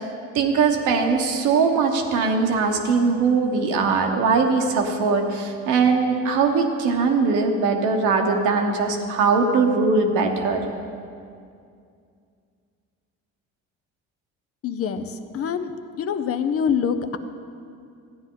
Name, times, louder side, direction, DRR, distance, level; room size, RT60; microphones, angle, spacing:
voice 1, 0.3-10.6, right 4 dB, 80° right, 3 dB, 1.2 m, -21 dB
voice 2, 14.6-17.2, left 7 dB, 50° left, 10 dB, 0.7 m, -25 dB
14.0 x 9.6 x 3.9 m, 2.3 s
cardioid pair, 95°, 30 cm